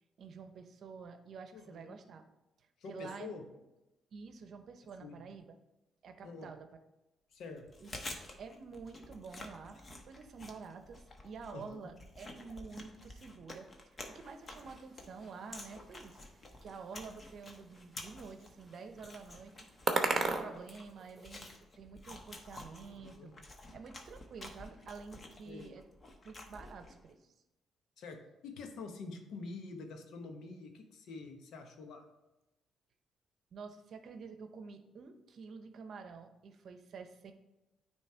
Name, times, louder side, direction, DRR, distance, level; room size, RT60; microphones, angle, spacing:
voice 1, 0.2-2.2 2.6-3.4 4.1-5.5 6.0-6.7 7.8-7.9 8.4-16.2 16.6-19.5 20.0-23.3 23.7-25.8 26.2-27.3 33.5-37.3, right 5 dB, 60° right, 8 dB, 0.7 m, -49 dB
voice 2, 1.5-1.9 2.8-3.4 5.0-5.2 6.2-6.5 7.3-7.7 11.5-11.9 22.8-23.3 25.5-25.7 28.0-28.2 28.4-32.0, left 4 dB, 80° left, 4 dB, 1.0 m, -47 dB
Chewing mastication, 7.6-27.1, left 2 dB, 35° left, 1.1 m, -51 dB
sound 1, 14.2-21.5, right 3 dB, 30° right, 0.9 m, -39 dB
9.2 x 3.2 x 4.3 m, 0.97 s
cardioid pair, 90°, 0 cm